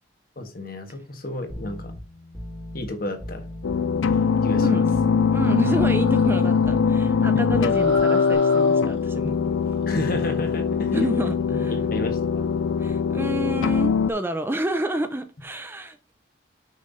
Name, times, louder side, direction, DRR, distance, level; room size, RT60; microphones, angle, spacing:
voice 1, 0.4-1.9 2.7-3.5 4.4-4.8 5.7-5.8 7.3-7.4 9.9-11.1 11.7-12.5, left 1 dB, 50° left, 5 dB, 1.5 m, -31 dB
sound 1, 1.5-8.3, left 1 dB, 15° left, 1.9 m, -37 dB
sound 2, 3.6-14.1, left 6 dB, 90° left, 0.4 m, -22 dB
voice 2, 4.6-4.9 5.3-9.6 10.9-11.9 12.8-16.1, right 1 dB, 10° right, 9 dB, 0.5 m, -29 dB
sound 3, 5.4-9.2 9.6-10.6, right 2 dB, 75° right, 1.5 m, -40 dB
6.4 x 5.6 x 4.0 m, 0.32 s
head